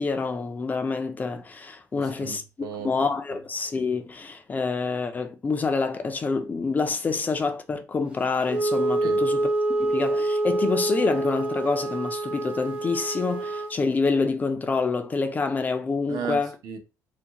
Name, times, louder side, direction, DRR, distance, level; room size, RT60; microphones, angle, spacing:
voice 1, 0.0-2.4 2.8-9.5 9.8-16.6, left 4 dB, 25° left, 0.4 m, -27 dB
voice 2, 1.9-2.9 9.0-9.2 16.1-16.8, right 7 dB, 65° right, 0.7 m, -35 dB
Wind instrument woodwind instrument, 8.5-13.8, right 2 dB, 20° right, 0.6 m, -26 dB
2.7 x 2.5 x 2.8 m
cardioid pair, 115°, 7 cm